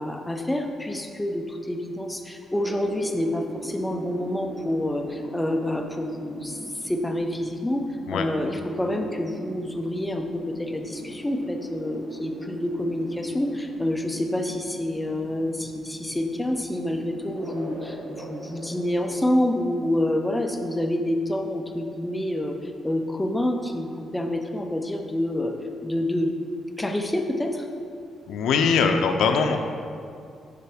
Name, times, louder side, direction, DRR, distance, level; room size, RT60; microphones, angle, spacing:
voice 1, 0.0-25.5 25.8-26.3 26.8-27.7, left 1 dB, 5° left, 3 dB, 0.4 m, -27 dB
sound 1, 2.5-20.3, right 2 dB, 85° right, 1.0 m, -41 dB
voice 2, 28.3-29.6, left 5 dB, 90° left, 5 dB, 0.4 m, -21 dB
6.7 x 4.1 x 3.5 m, 2.4 s
cardioid pair, 170°, 0 cm